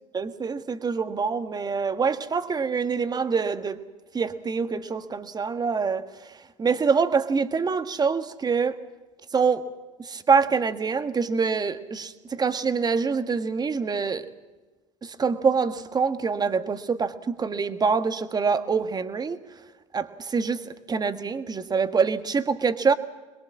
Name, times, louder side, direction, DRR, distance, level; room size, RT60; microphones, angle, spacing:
voice 1, 0.1-3.8 4.1-6.0 6.6-8.8 9.3-9.6 10.0-14.3 15.0-19.4 19.9-22.9, right 5 dB, 25° right, 10 dB, 1.5 m, -25 dB
22.5 x 21.5 x 7.4 m, 1.2 s
hypercardioid pair, 80°, 16 cm